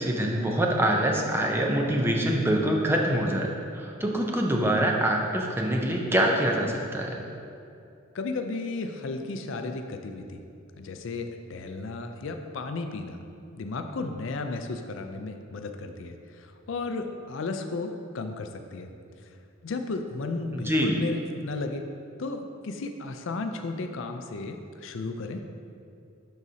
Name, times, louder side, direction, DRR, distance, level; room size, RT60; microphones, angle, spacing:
voice 1, 0.0-7.2 20.5-21.0, right 1 dB, 10° right, 0 dB, 0.5 m, -25 dB
voice 2, 8.1-10.4 10.8-13.2 13.6-18.9 19.6-21.8 22.2-25.4, left 3 dB, 60° left, 6 dB, 0.4 m, -34 dB
11.0 x 4.1 x 2.8 m, 2.6 s
head